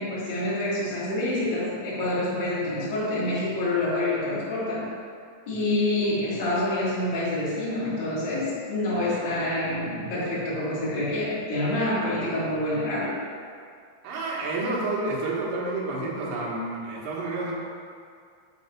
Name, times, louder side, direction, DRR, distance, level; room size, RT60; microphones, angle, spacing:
voice 1, 0.0-4.8 5.5-13.1, left 1 dB, 45° left, -9 dB, 1.5 m, -27 dB
voice 2, 9.0-9.6 14.0-17.5, right 2 dB, 70° right, -5 dB, 3.4 m, -30 dB
7.3 x 4.2 x 5.8 m, 2.2 s
omnidirectional pair, 5.4 m